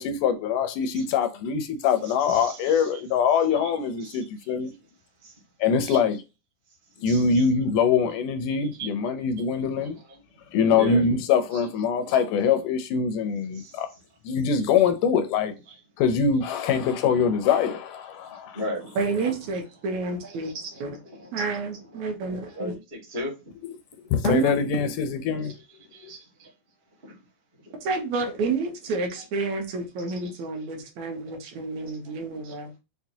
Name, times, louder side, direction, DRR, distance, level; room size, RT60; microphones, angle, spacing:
voice 1, 0.0-4.7 5.6-6.2 7.0-10.0 10.5-13.9 14.2-15.5 16.0-18.6 23.6-23.7 24.1-25.5 26.0-26.1, left 6 dB, 80° left, 2.1 m, -23 dB
voice 2, 1.8-3.0 3.3-3.7 4.0-4.8 5.2-5.3 5.8-6.0 7.0-7.5 8.6-8.9 9.4-10.2 10.7-11.0 11.5-11.6 12.0-12.3 13.5-14.0 14.3-14.7 15.5-15.7 16.4-17.0 18.2-19.3 19.6-23.3 25.4-26.5 27.0-27.2 27.6-27.7 29.1-29.2 30.1-30.3 31.5-31.6 32.4-32.5, right 1 dB, 35° right, 0.8 m, -40 dB
voice 3, 19.0-20.5 20.8-21.0 21.3-22.7 24.2-24.6 27.7-32.7, right 4 dB, 75° right, 2.0 m, -29 dB
5.9 x 2.2 x 2.7 m
omnidirectional pair, 3.6 m